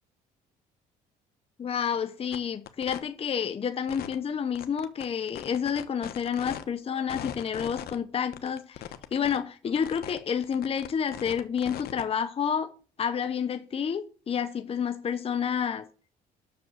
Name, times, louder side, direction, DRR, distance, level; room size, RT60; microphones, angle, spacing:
voice 1, 1.6-12.7 13.0-15.9, left 7 dB, 35° left, 0.9 m, -29 dB
sound 1, 2.3-2.4 2.7-3.0 3.9-4.2 4.6-6.6 7.1-8.0 8.3-9.4 9.8-10.2 10.4-12.0, left 11 dB, 65° left, 1.2 m, -39 dB
7.7 x 6.8 x 8.0 m
cardioid pair, 110°, 17 cm